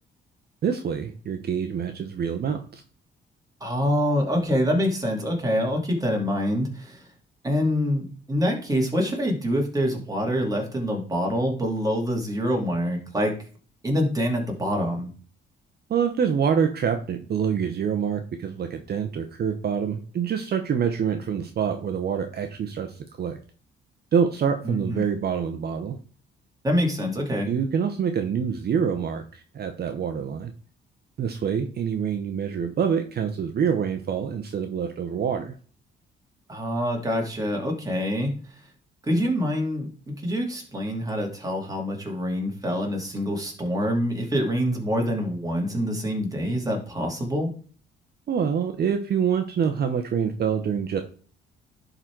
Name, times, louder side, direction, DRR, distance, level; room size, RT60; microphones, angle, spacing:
voice 1, 0.6-2.8 15.9-23.4 24.1-26.0 27.5-30.5 31.2-35.5 48.3-51.0, right 7 dB, 55° right, 6 dB, 0.9 m, -26 dB
voice 2, 3.6-7.1 7.4-13.3 13.8-15.1 24.6-25.0 26.6-27.5 36.5-38.3 39.0-47.5, equal, 20° right, 0 dB, 2.7 m, -25 dB
11.0 x 3.9 x 4.6 m, 0.42 s
cardioid pair, 90°, 20 cm